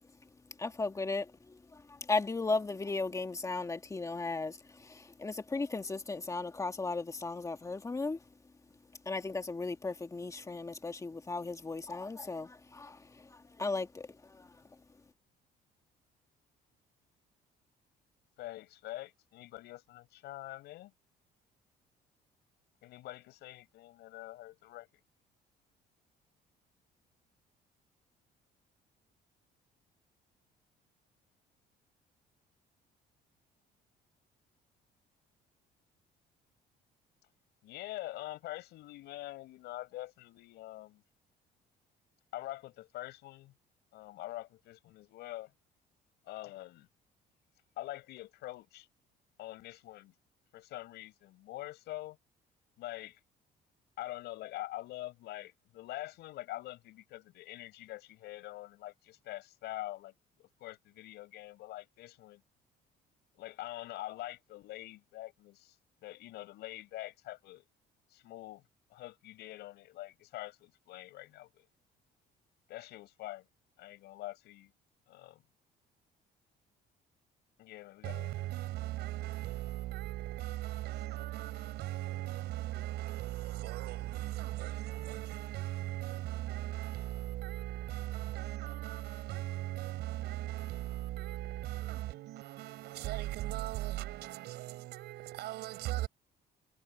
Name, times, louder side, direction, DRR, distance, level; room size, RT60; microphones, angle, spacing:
voice 1, 0.6-1.6 2.1-8.2 9.0-13.0 13.6-14.1 14.4-14.5, left 3 dB, 20° left, 1.8 m, -36 dB
voice 2, 18.4-20.9 22.8-24.9 37.6-41.0 42.3-43.5 43.9-45.5 46.3-46.9 47.8-48.9 49.4-50.1 50.5-52.2 52.8-53.2 54.0-62.4 63.3-65.8 66.0-67.6 68.1-68.6 68.9-71.7 72.7-73.4 73.8-74.7 75.1-75.4 77.6-78.4, left 16 dB, 80° left, 6.5 m, -45 dB
voice 3, 78.0-96.1, right 16 dB, 80° right, 5.3 m, -38 dB
cardioid pair, 110°, 17 cm